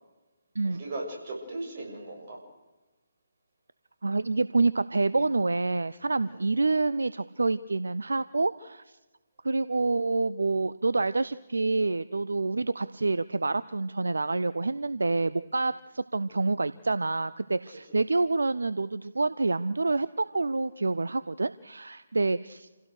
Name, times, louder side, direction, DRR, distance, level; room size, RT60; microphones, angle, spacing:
voice 1, 0.7-2.4 6.2-6.5 17.9-18.0, right 2 dB, 45° right, -1 dB, 7.0 m, -38 dB
voice 2, 4.0-9.0 9.4-22.7, right 3 dB, 70° right, 15 dB, 0.6 m, -27 dB
28.5 x 16.5 x 6.5 m, 1.1 s
figure-of-eight pair, 140°, 0 cm